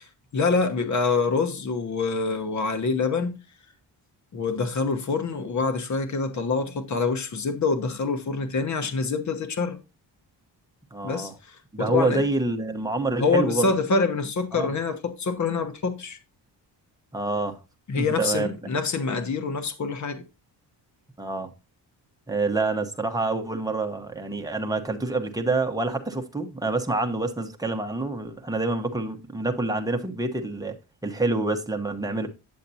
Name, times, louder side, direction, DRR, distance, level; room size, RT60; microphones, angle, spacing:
voice 1, 0.3-3.4 4.3-9.8 11.0-12.3 13.2-16.2 17.9-20.2, left 4 dB, 40° left, 1.1 m, -26 dB
voice 2, 10.9-11.3 11.7-13.6 14.5-14.7 17.1-17.6 18.0-18.5 21.2-21.5 22.3-30.7 31.0-32.3, right 2 dB, 10° right, 1.0 m, -27 dB
8.7 x 7.4 x 2.7 m
wide cardioid pair, 140°, 43 cm